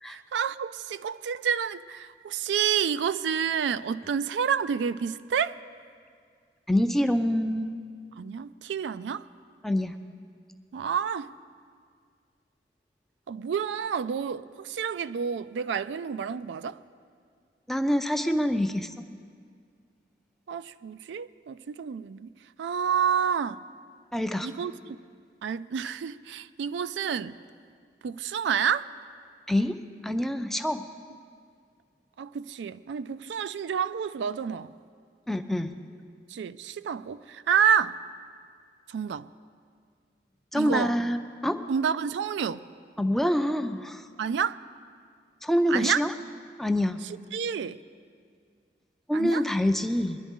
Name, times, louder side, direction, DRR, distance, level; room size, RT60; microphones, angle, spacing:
voice 1, 0.0-5.6 8.2-9.3 10.7-11.3 13.3-16.8 20.5-22.3 22.6-23.6 24.4-25.0 25.4-27.3 28.0-28.9 32.2-34.7 36.3-38.0 38.9-39.3 40.5-40.9 41.7-42.6 44.2-44.6 45.7-46.0 47.3-47.8 49.1-49.5, right 7 dB, 85° right, 0.3 m, -29 dB
voice 2, 6.7-7.7 9.6-10.0 17.7-18.9 24.1-24.5 29.5-29.7 30.0-30.8 35.3-35.8 40.5-41.6 43.0-44.0 45.4-46.1 46.6-47.0 49.1-50.2, equal, ahead, 0.4 m, -26 dB
22.0 x 11.0 x 3.6 m
head